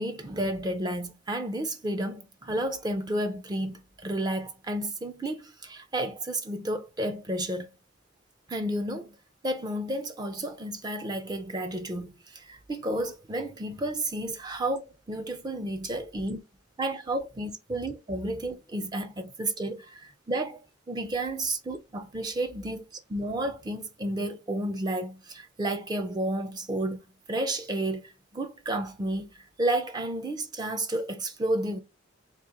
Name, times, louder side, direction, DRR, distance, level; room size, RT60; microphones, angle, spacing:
voice 1, 0.0-7.7 8.5-9.2 9.4-14.8 15.1-16.4 16.8-19.9 20.3-22.8 23.1-27.0 27.3-29.3 29.6-31.8, right 1 dB, 20° right, 0.4 m, -31 dB
2.8 x 2.4 x 3.6 m
head